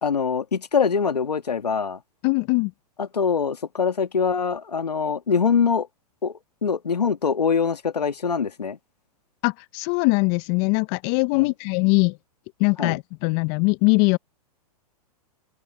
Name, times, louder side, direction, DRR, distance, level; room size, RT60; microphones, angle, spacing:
voice 1, 0.0-2.0 3.0-5.9 6.2-8.8 12.8-13.0, left 6 dB, 90° left, 2.1 m, -23 dB
voice 2, 2.2-2.7 9.4-12.2 12.6-14.2, left 30 dB, 40° left, 0.8 m, -21 dB
hypercardioid pair, 115°, 20 cm